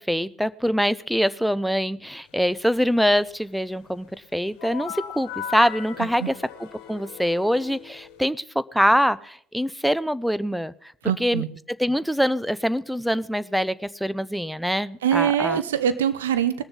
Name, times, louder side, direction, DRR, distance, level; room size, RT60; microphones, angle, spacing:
voice 1, 0.0-6.3 6.6-10.7 11.2-11.4 11.8-15.6, equal, ahead, 17 dB, 0.6 m, -24 dB
sound 1, 4.6-8.2, left 7 dB, 65° left, 1.5 m, -38 dB
voice 2, 11.0-11.5 15.0-16.6, right 9 dB, 80° right, 13 dB, 0.7 m, -23 dB
20.0 x 6.9 x 5.5 m, 0.64 s
hypercardioid pair, 70°, 0 cm